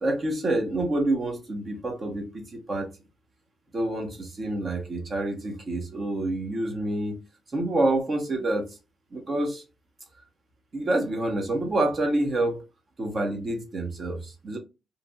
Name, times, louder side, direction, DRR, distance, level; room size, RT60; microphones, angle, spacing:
voice 1, 0.0-2.9 3.7-7.2 7.5-8.7 9.1-9.6 10.7-12.6 13.0-14.6, right 2 dB, 40° right, 1.0 m, -27 dB
3.0 x 2.5 x 2.3 m
cardioid pair, 90°, 0 cm